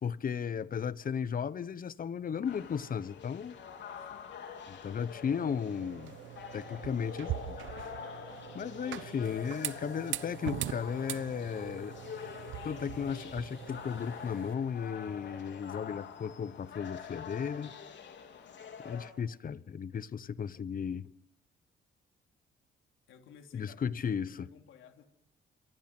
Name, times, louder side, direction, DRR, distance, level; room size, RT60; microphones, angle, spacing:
voice 1, 0.0-3.6 4.7-6.2 6.5-7.6 8.5-12.0 12.6-17.7 18.8-21.1 23.5-24.5, left 7 dB, 45° left, 1.1 m, -35 dB
sound 1, 2.4-19.1, left 7 dB, 65° left, 3.8 m, -46 dB
voice 2, 4.0-4.3 23.1-25.1, left 7 dB, 80° left, 3.3 m, -57 dB
sound 2, 5.3-14.5, right 12 dB, 75° right, 1.0 m, -42 dB
28.0 x 23.5 x 6.1 m
cardioid pair, 90°, 20 cm